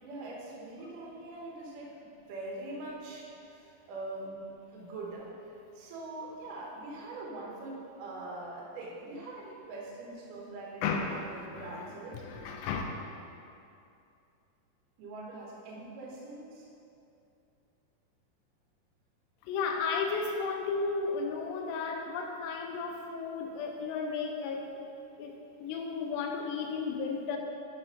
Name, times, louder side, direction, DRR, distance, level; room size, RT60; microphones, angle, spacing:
voice 1, 0.0-2.0 2.3-5.3 5.7-12.2 15.0-16.7, right 2 dB, 65° right, -4 dB, 2.3 m, -43 dB
voice 2, 10.8-12.8 19.4-24.9 25.2-27.4, left 5 dB, 85° left, 3 dB, 2.6 m, -34 dB
7.8 x 4.2 x 5.6 m, 2.6 s
omnidirectional pair, 5.0 m